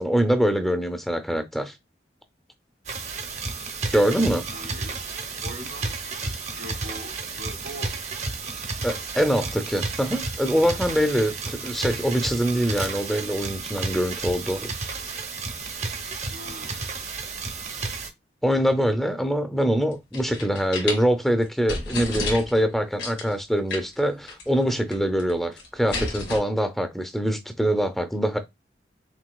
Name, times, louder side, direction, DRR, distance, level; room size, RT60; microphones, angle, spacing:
voice 1, 0.0-1.7 3.9-4.4 8.8-14.7 18.4-28.4, equal, ahead, 0.5 m, -24 dB
sound 1, 2.9-18.1, right 4 dB, 40° right, 0.7 m, -32 dB
voice 2, 4.4-5.0 5.4-7.9 16.3-16.9, equal, 85° right, 2.7 m, -41 dB
sound 2, 19.9-21.0 21.4-21.5 21.7-22.6 23.0-23.3 23.7-24.0 24.3-24.4 24.7-25.3 25.6-26.4, left 3 dB, 85° left, 2.0 m, -31 dB
6.0 x 2.8 x 2.3 m
head